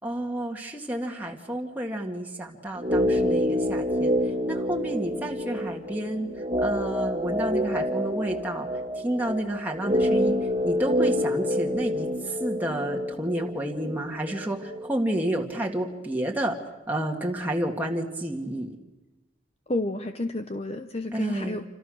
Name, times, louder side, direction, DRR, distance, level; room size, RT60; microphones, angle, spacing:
voice 1, 0.0-8.7 8.9-16.6 16.9-18.7 21.1-21.6, right 1 dB, 10° right, 0 dB, 2.1 m, -30 dB
sound 1, 2.8-14.9 15.1-15.2, equal, 30° right, 2.0 m, -27 dB
voice 2, 19.7-21.6, left 2 dB, 30° left, 7 dB, 0.9 m, -30 dB
28.0 x 26.5 x 6.5 m, 1.1 s
head